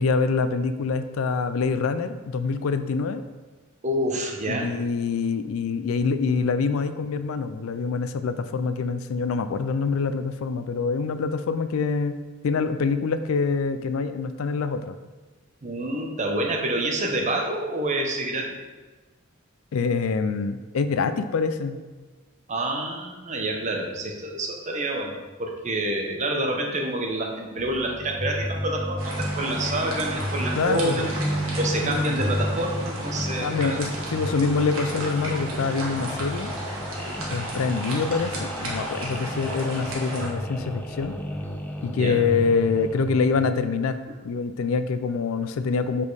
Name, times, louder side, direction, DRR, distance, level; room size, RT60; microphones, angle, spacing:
voice 1, 0.0-3.2 4.5-15.0 19.7-21.8 30.6-31.1 31.8-32.2 33.4-36.5 37.3-41.2 41.8-46.0, left 4 dB, 80° left, 11 dB, 0.4 m, -25 dB
voice 2, 3.8-4.7 15.6-18.6 22.5-31.1 31.6-33.8 41.9-42.2, right 1 dB, 35° right, 1 dB, 0.8 m, -28 dB
sound 1, 27.6-43.5, equal, 10° left, 0.4 m, -32 dB
sound 2, 29.0-40.3, right 1 dB, 75° right, 1.5 m, -34 dB
5.2 x 4.3 x 4.7 m, 1.3 s
head